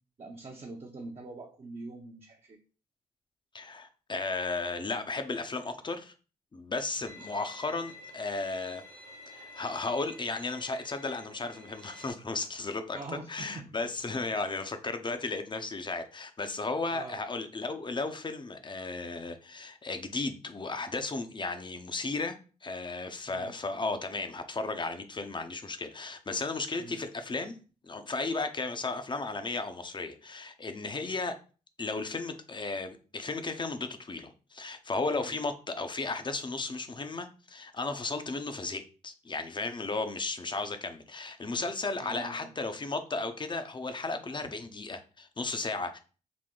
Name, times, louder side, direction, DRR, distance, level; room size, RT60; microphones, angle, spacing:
voice 1, 0.2-2.6 12.9-13.7 16.9-17.2 23.3-23.5 26.8-27.0 35.1-35.3 42.0-42.3, right 3 dB, 40° right, -1 dB, 0.8 m, -44 dB
voice 2, 3.5-6.1 6.5-8.8 9.3-13.0 13.3-22.4 22.6-27.6 27.8-31.4 31.8-46.0, left 3 dB, 30° left, 8 dB, 0.7 m, -34 dB
Bowed string instrument, 7.1-12.1, left 1 dB, 80° right, 1.2 m, -50 dB
4.0 x 2.1 x 3.7 m, 0.36 s
supercardioid pair, 50°, 15 cm